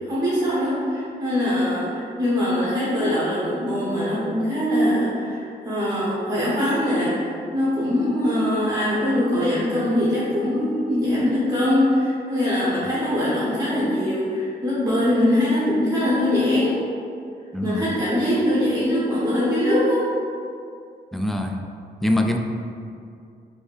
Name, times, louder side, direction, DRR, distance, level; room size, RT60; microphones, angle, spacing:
voice 1, 0.0-16.8 17.6-20.0, left 1 dB, 20° right, -10 dB, 1.2 m, -22 dB
voice 2, 17.5-18.0 21.1-21.6 22.0-22.4, left 1 dB, ahead, 3 dB, 0.3 m, -24 dB
4.6 x 2.7 x 3.5 m, 2.4 s
cardioid pair, 80°, 18 cm